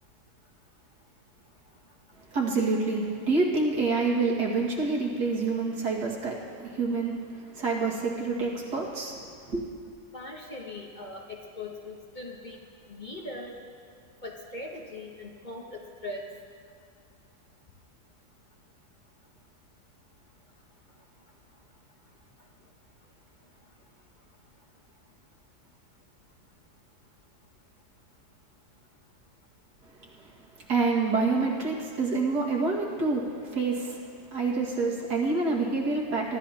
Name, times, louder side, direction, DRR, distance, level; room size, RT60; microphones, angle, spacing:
voice 1, 2.3-7.2 7.5-9.6 30.7-34.0 34.3-36.4, right 3 dB, 80° right, -3 dB, 2.5 m, -27 dB
voice 2, 10.1-12.6 12.9-13.5 14.2-16.3, left 2 dB, 35° left, -1 dB, 1.0 m, -40 dB
23.5 x 13.0 x 2.8 m, 2.2 s
omnidirectional pair, 1.7 m